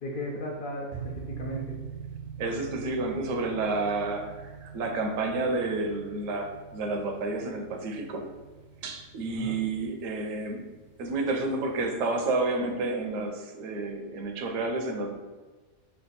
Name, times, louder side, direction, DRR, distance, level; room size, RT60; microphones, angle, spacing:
voice 1, 0.0-1.8 9.3-9.6, left 1 dB, 55° left, -2 dB, 0.6 m, -36 dB
sound 1, 0.9-11.7, right 7 dB, 50° right, 0.5 m, -44 dB
voice 2, 2.4-8.2 8.8-10.6 11.0-15.1, right 3 dB, 85° right, 4 dB, 1.0 m, -30 dB
3.4 x 2.3 x 4.0 m, 1.3 s
omnidirectional pair, 1.3 m